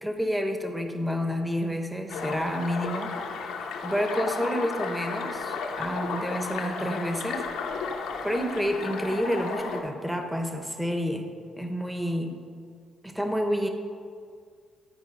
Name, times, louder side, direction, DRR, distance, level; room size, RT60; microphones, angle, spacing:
voice 1, 0.0-3.2 3.8-7.5 8.2-11.3 11.6-12.4 13.0-13.7, equal, 5° right, 5 dB, 0.8 m, -29 dB
sound 1, 2.1-9.8, left 5 dB, 90° left, 0.9 m, -33 dB
11.5 x 4.5 x 5.3 m, 2.1 s
cardioid pair, 90°, 0 cm